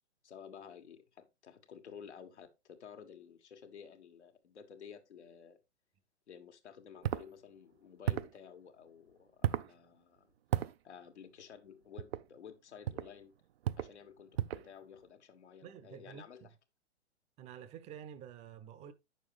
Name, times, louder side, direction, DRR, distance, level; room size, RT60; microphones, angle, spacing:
voice 1, 0.2-5.6 6.3-10.3 10.8-13.3 13.8-16.5, left 7 dB, 75° left, 1.6 m, -53 dB
sound 1, 7.0-7.3 8.0-8.4 9.4-9.7 10.5-10.7 12.0-12.2 12.8-13.1 13.6-13.9 14.4-14.7, right 11 dB, 60° right, 0.5 m, -34 dB
voice 2, 15.6-16.5 17.4-18.9, right 9 dB, 20° right, 0.7 m, -50 dB
9.0 x 6.7 x 3.2 m
hypercardioid pair, 120°, 34 cm